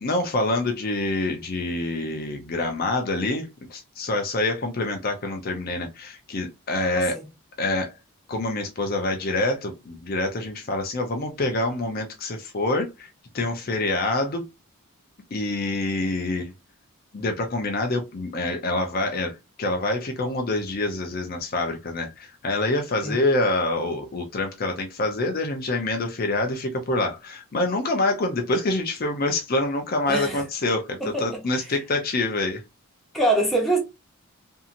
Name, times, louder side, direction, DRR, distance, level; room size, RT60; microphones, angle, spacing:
voice 1, 0.0-7.2 7.6-7.9 8.3-13.1 13.3-14.5 15.3-16.5 17.1-32.6, left 2 dB, 40° left, 0.5 m, -26 dB
voice 2, 6.9-7.2 23.0-23.2 30.1-30.4 33.1-33.8, right 2 dB, ahead, 0.7 m, -23 dB
2.7 x 2.7 x 2.4 m
head